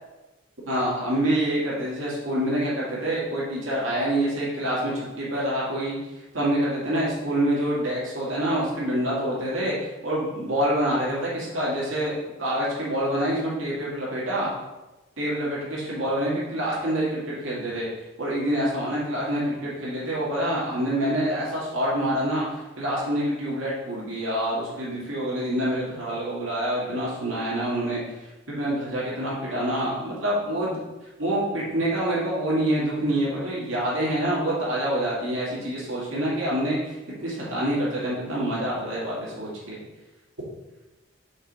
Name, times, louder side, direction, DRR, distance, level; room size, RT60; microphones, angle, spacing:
voice 1, 0.7-6.0 6.3-9.7 10.0-14.5 15.2-17.9 18.2-28.0 28.5-30.8 31.2-39.8, right 1 dB, 75° right, -7 dB, 2.2 m, -26 dB
5.4 x 4.2 x 5.2 m, 1.1 s
head